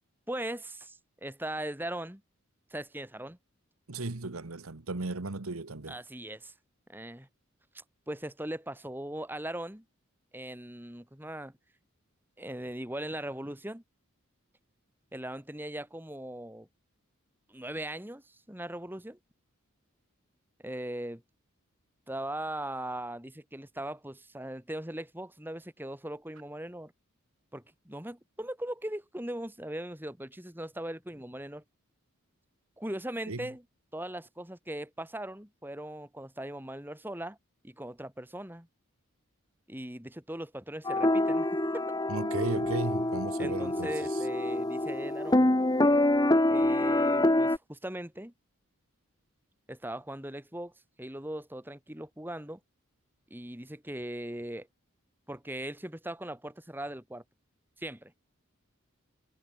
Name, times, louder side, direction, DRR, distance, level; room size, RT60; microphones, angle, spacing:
voice 1, 0.3-2.2 2.7-3.4 5.9-6.5 6.9-7.3 7.7-9.8 10.3-11.5 12.4-13.8 15.1-16.7 17.5-19.2 20.6-21.2 22.1-26.9 27.5-31.6 32.8-33.6 33.9-37.4 37.6-38.7 39.7-41.5 41.7-41.8 43.4-45.5 46.5-48.3 49.7-50.7 51.0-52.6 53.3-54.7 55.3-57.2 57.8-58.1, right 1 dB, 10° right, 2.5 m, -39 dB
voice 2, 3.9-6.0 33.3-33.5 42.1-43.9, right 3 dB, 85° right, 1.3 m, -35 dB
sound 1, 40.9-47.6, left 1 dB, 20° left, 1.0 m, -26 dB
head